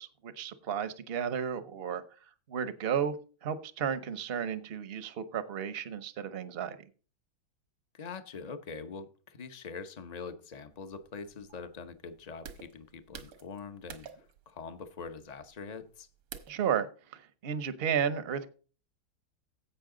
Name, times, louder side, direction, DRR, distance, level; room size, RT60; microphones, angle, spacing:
voice 1, 0.0-2.0 2.5-3.2 3.4-6.8 16.5-18.5, right 8 dB, 45° right, 12 dB, 0.7 m, -33 dB
voice 2, 7.9-16.1, left 5 dB, 45° left, 9 dB, 0.5 m, -44 dB
sound 1, 10.7-16.7, right 8 dB, 85° right, 2.0 m, -50 dB
16.0 x 5.6 x 3.8 m, 0.37 s
omnidirectional pair, 2.2 m